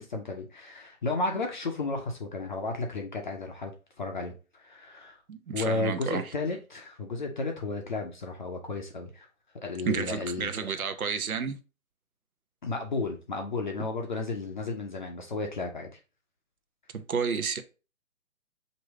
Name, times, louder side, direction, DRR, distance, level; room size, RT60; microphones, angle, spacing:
voice 1, 0.0-3.7 4.0-5.2 5.5-9.3 9.6-10.9 12.6-15.9, left 3 dB, 35° left, 0.5 m, -33 dB
voice 2, 5.3-6.3 9.9-11.6 16.9-17.6, right 6 dB, 85° right, 0.7 m, -31 dB
3.0 x 2.7 x 4.4 m
figure-of-eight pair, 140°, 42 cm